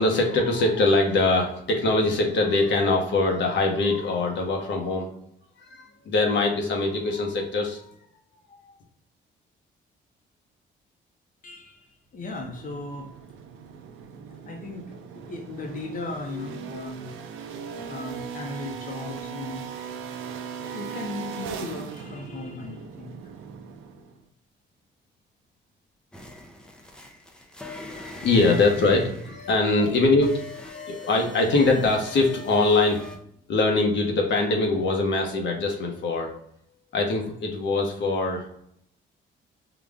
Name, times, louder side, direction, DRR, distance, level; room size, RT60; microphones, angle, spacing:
voice 1, 0.0-5.1 5.6-7.8 27.9-33.1 33.5-36.4 36.9-38.5, left 2 dB, 65° left, 1 dB, 0.9 m, -23 dB
voice 2, 11.4-13.1 14.5-17.2 17.7-19.6 20.6-23.2 27.4-27.7 29.7-29.9, left 2 dB, 45° left, 1 dB, 0.8 m, -37 dB
sound 1, 12.4-24.2, right 7 dB, 90° right, 0.5 m, -39 dB
sound 2, 26.1-33.2, left 2 dB, 5° left, 0.6 m, -42 dB
3.9 x 2.4 x 3.4 m, 0.71 s
cardioid pair, 90°, 20 cm